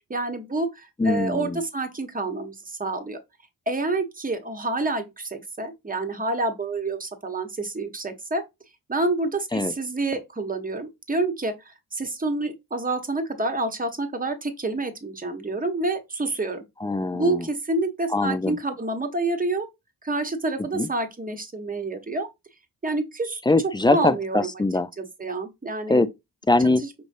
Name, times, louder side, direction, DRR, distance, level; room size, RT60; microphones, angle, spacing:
voice 1, 0.1-3.2 3.7-8.4 8.9-16.6 17.1-19.7 20.0-22.3 22.8-24.5 25.0-26.0 26.8-26.9, right 2 dB, 20° right, 1.0 m, -28 dB
voice 2, 1.0-1.6 9.5-9.7 16.8-17.5 18.1-18.6 20.7-20.9 23.5-24.9 25.9-26.1 26.5-26.8, left 2 dB, 10° left, 0.4 m, -22 dB
5.2 x 3.1 x 2.6 m
cardioid pair, 70°, 38 cm